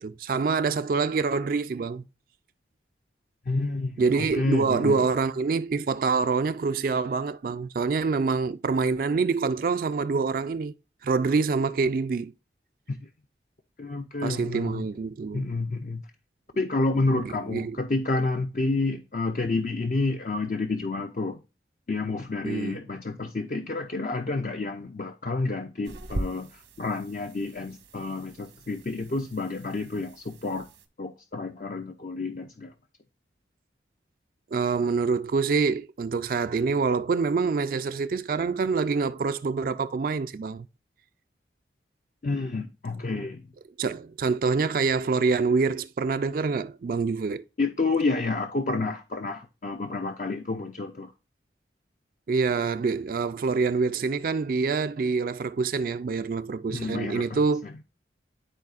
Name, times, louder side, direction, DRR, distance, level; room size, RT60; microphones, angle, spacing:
voice 1, 0.0-2.0 4.0-10.7 11.0-12.3 14.2-15.5 17.2-17.8 22.4-22.8 34.5-40.7 43.8-47.4 52.3-57.8, right 4 dB, 50° right, 0.3 m, -26 dB
voice 2, 3.5-5.0 12.9-13.0 13.8-14.8 15.3-16.0 16.6-21.4 21.9-30.7 31.0-32.7 42.2-43.4 47.6-51.1 56.7-57.7, left 3 dB, 45° left, 0.5 m, -29 dB
sound 1, 25.8-30.9, right 1 dB, 85° right, 1.2 m, -40 dB
12.0 x 4.1 x 2.4 m
head